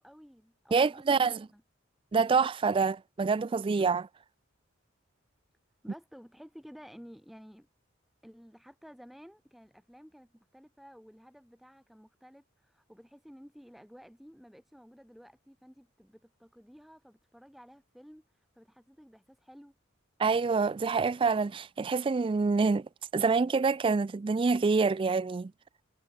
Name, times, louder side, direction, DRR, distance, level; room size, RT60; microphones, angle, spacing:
voice 1, 0.0-1.6 5.8-7.7 8.2-18.2 18.6-19.7, equal, ahead, 7.8 m, -53 dB
voice 2, 0.7-1.5 2.1-4.1 20.2-22.9 23.1-25.5, right 4 dB, 25° right, 0.3 m, -26 dB
head